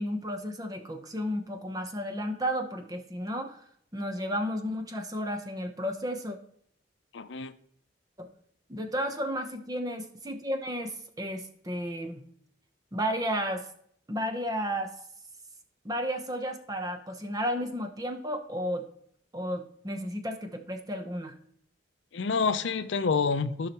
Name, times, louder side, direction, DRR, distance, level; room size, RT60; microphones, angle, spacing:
voice 1, 0.0-3.6 3.9-6.4 8.2-8.3 8.7-12.2 12.9-13.6 14.1-14.9 15.8-18.9 19.3-21.3, equal, 20° right, 0.9 m, -33 dB
voice 2, 7.1-7.5 22.1-23.7, left 5 dB, 75° left, 0.5 m, -28 dB
14.5 x 5.6 x 3.0 m
head